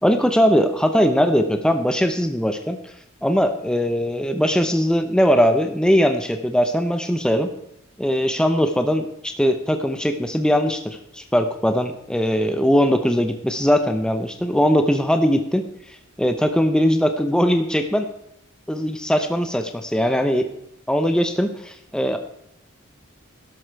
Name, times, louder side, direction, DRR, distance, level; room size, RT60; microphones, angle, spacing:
voice 1, 0.0-2.8 3.2-7.5 8.0-15.6 16.2-18.1 18.7-20.5 20.9-22.2, equal, 5° left, 7 dB, 0.8 m, -20 dB
12.0 x 12.0 x 4.7 m, 0.78 s
head